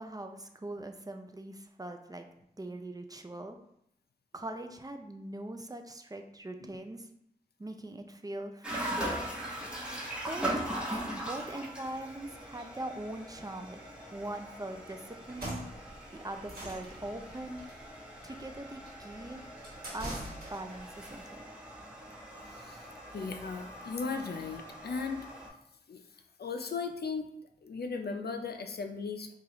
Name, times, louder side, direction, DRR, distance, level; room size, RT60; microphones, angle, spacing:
voice 1, 0.0-2.3 2.6-3.6 4.3-7.1 7.6-9.3 10.3-10.5 11.2-13.8 14.1-15.6 16.1-17.6 18.2-19.4 19.9-21.4, right 1 dB, 25° right, 5 dB, 0.4 m, -41 dB
sound 1, 8.6-25.5, right 1 dB, 5° right, 0.9 m, -41 dB
sound 2, 15.3-20.9, right 1 dB, 75° right, 1.3 m, -44 dB
voice 2, 22.5-22.9 23.1-25.2 25.9-26.0 26.4-27.3 27.6-29.4, left 4 dB, 85° left, 6 dB, 0.4 m, -37 dB
4.7 x 2.4 x 3.0 m, 0.74 s
wide cardioid pair, 60°, 16 cm